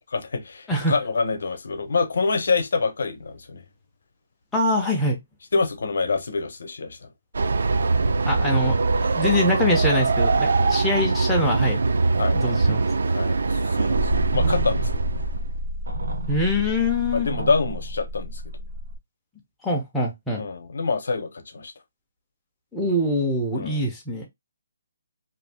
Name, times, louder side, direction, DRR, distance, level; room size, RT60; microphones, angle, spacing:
voice 1, 0.1-3.6 5.5-7.1 10.6-10.7 12.2-12.4 13.0-15.2 17.1-18.4 20.4-21.7 23.5-23.9, left 4 dB, 55° left, 0.7 m, -26 dB
voice 2, 4.5-5.2 8.3-11.8 12.3-12.8 16.3-17.3 19.6-20.4 22.7-24.3, left 1 dB, 5° left, 0.4 m, -24 dB
Train, 7.3-15.5, right 3 dB, 65° right, 0.3 m, -22 dB
sound 1, 13.9-19.0, equal, 85° right, 0.8 m, -29 dB
2.5 x 2.2 x 3.3 m
hypercardioid pair, 175°, 0 cm